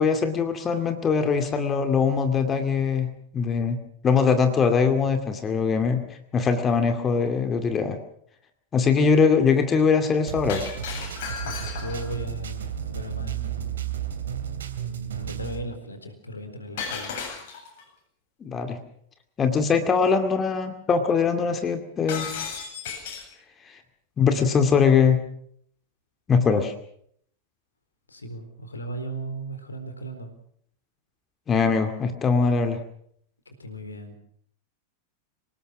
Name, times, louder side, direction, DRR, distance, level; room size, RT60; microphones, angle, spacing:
voice 1, 0.0-3.1 3.3-3.8 4.0-6.0 6.3-8.0 8.7-10.6 18.4-18.8 19.4-22.3 23.7-23.8 24.2-25.2 26.3-26.7 31.5-32.8, left 5 dB, 20° left, 7 dB, 2.3 m, -22 dB
sound 1, 10.3-15.6, right 9 dB, 65° right, 2.6 m, -33 dB
Shatter, 10.5-12.2 16.8-17.8 22.1-23.3, left 6 dB, 50° left, 8.0 m, -34 dB
voice 2, 11.4-14.0 14.8-17.2 24.3-24.5 28.1-30.3 33.5-34.2, right 1 dB, 75° left, 8 dB, 4.2 m, -37 dB
26.5 x 19.0 x 6.2 m, 0.65 s
figure-of-eight pair, 90°, 0 cm